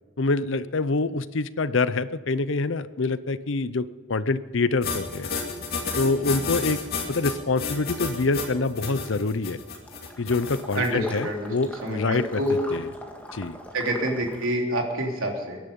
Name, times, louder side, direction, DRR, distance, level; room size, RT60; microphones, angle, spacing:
voice 1, 0.2-5.3 5.9-6.8 7.1-9.6 10.2-12.9 13.3-13.6, left 3 dB, 60° left, 15 dB, 0.6 m, -26 dB
sound 1, 4.8-10.9, left 5 dB, 45° left, 2.5 m, -31 dB
Water / Liquid, 9.7-14.6, equal, 5° left, 1.7 m, -43 dB
voice 2, 10.7-11.5 11.8-12.7 13.7-15.6, right 1 dB, 75° right, 1 dB, 3.2 m, -27 dB
22.5 x 11.0 x 5.4 m, 1.5 s
head